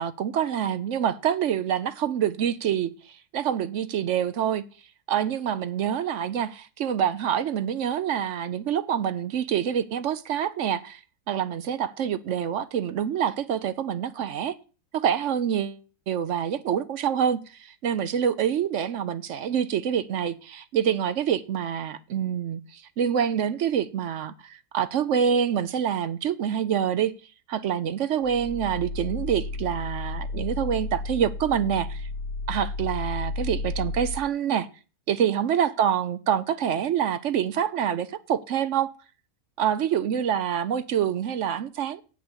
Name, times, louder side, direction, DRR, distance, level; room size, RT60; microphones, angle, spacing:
voice 1, 0.0-4.6 5.1-11.0 11.3-14.6 14.9-15.8 16.1-27.1 27.5-32.1 32.5-34.7 35.1-38.9 39.6-42.0, right 9 dB, 65° right, 0.8 m, -26 dB
sound 1, 28.2-34.2, left 3 dB, 80° left, 1.6 m, -33 dB
8.4 x 6.1 x 7.3 m
omnidirectional pair, 1.6 m